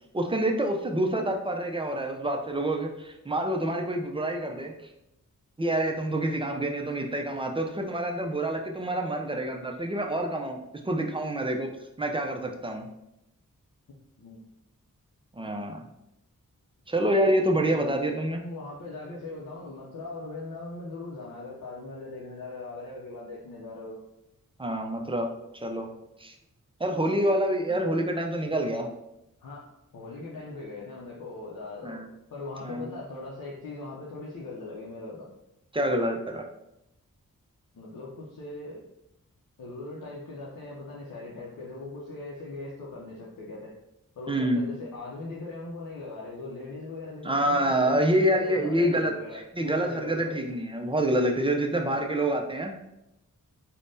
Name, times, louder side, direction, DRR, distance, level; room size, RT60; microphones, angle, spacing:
voice 1, 0.1-4.7 5.6-10.6 10.8-11.7 12.0-12.9 15.3-15.8 16.9-18.4 24.6-25.9 26.2-26.3 26.8-28.9 31.8-32.1 32.6-32.9 35.7-36.4 44.3-44.7 47.2-52.7, right 1 dB, 15° right, 3 dB, 0.4 m, -27 dB
voice 2, 17.6-18.0 18.4-24.0 27.7-27.8 29.4-32.0 32.3-35.3 37.7-38.8 39.6-43.7 44.2-50.4, left 2 dB, 65° left, -5 dB, 0.6 m, -40 dB
3.3 x 2.1 x 2.6 m, 0.85 s
cardioid pair, 45°, 34 cm